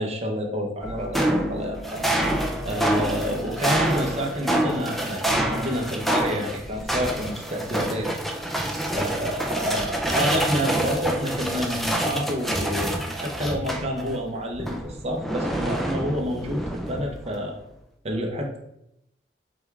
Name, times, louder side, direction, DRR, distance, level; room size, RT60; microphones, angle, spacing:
voice 1, 0.0-2.1 2.6-8.1 8.6-17.6 18.0-18.6, equal, 35° right, 1 dB, 0.7 m, -29 dB
sound 1, 0.8-14.2 14.5-17.3, right 1 dB, ahead, 0.3 m, -27 dB
5.0 x 2.3 x 3.4 m, 0.80 s
head